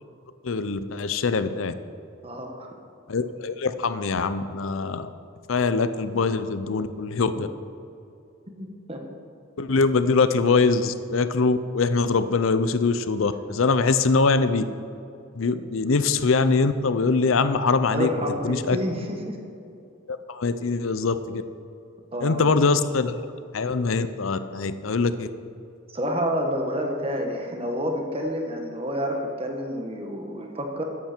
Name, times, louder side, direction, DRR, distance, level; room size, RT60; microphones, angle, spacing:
voice 1, 0.4-1.7 3.1-5.1 5.5-7.5 9.6-14.6 15.4-18.1 18.4-18.8 20.1-21.4 22.2-23.2 23.5-25.3, left 4 dB, 80° left, 12 dB, 0.6 m, -23 dB
voice 2, 2.2-2.7 8.6-9.0 17.9-19.4 22.1-22.5 25.9-30.8, equal, 30° right, 3 dB, 1.5 m, -29 dB
13.5 x 10.5 x 4.5 m, 2.6 s
head